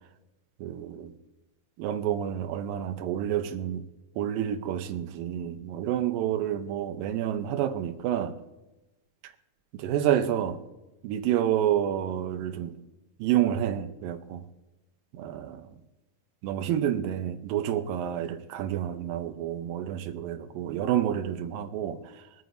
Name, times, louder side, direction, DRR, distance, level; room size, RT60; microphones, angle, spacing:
voice 1, 0.6-1.1 1.8-3.8 4.2-8.3 9.7-10.6 11.0-12.7 13.2-14.4 15.2-15.6 16.4-22.0, right 10 dB, 90° right, 2.6 m, -29 dB
24.0 x 9.2 x 2.7 m
omnidirectional pair, 3.9 m